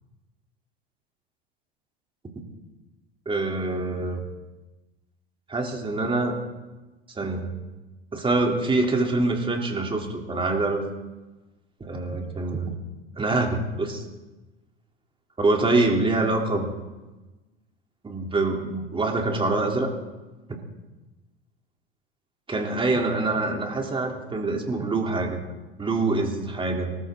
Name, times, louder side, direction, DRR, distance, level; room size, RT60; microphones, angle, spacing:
voice 1, 3.2-4.2 5.5-6.3 7.1-7.5 8.1-10.8 11.8-12.8 13.2-14.0 15.4-16.7 18.0-19.9 22.5-25.4 25.8-27.0, right 2 dB, 15° right, 1 dB, 3.4 m, -25 dB
24.5 x 14.0 x 3.9 m, 1.1 s
hypercardioid pair, 90°, 30 cm